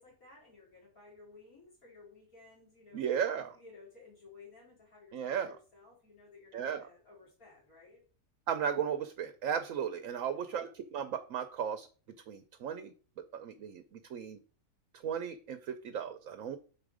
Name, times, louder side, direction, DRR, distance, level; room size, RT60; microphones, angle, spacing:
voice 1, 0.0-3.1 3.5-8.0 10.1-10.6, left 3 dB, 70° left, -4 dB, 4.1 m, -57 dB
voice 2, 2.9-3.5 5.1-5.6 6.5-6.9 8.5-11.9 12.3-12.9 13.3-14.4 15.0-16.6, right 8 dB, 70° right, 9 dB, 1.0 m, -35 dB
7.2 x 5.0 x 4.9 m, 0.39 s
omnidirectional pair, 1.5 m